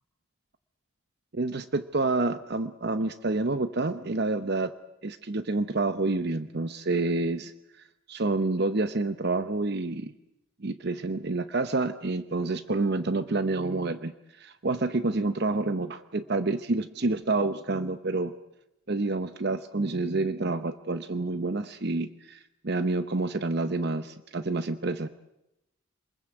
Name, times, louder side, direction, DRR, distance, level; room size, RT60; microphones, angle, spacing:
voice 1, 1.3-4.7 5.0-7.5 8.1-10.1 10.6-14.1 14.4-18.3 18.9-25.1, right 3 dB, 50° right, 11 dB, 0.8 m, -28 dB
27.0 x 21.0 x 7.8 m, 0.87 s
head